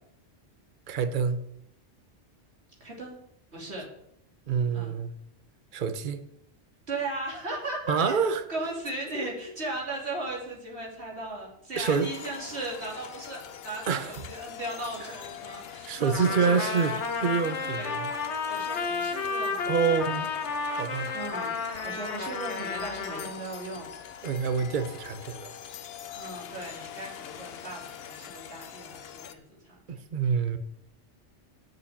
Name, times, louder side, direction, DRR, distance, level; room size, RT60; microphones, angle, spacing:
voice 1, 0.9-1.4 4.5-5.1 5.7-6.2 7.9-8.4 11.8-12.1 13.9-14.2 15.9-17.0 17.2-18.1 19.7-20.3 20.8-21.1 24.2-25.5 29.9-30.6, right 6 dB, 50° right, 10 dB, 0.9 m, -27 dB
voice 2, 2.8-3.2 3.5-3.9 4.7-4.9 6.9-8.2 8.5-16.8 17.8-18.0 18.5-20.2 21.1-21.5 21.8-23.9 26.1-29.7, right 2 dB, 70° right, -2 dB, 3.3 m, -37 dB
sound 1, 11.8-29.3, left 9 dB, 65° left, 0.9 m, -44 dB
Trumpet, 16.1-23.3, left 4 dB, 90° left, 1.5 m, -32 dB
8.1 x 7.0 x 7.2 m, 0.73 s
omnidirectional pair, 1.1 m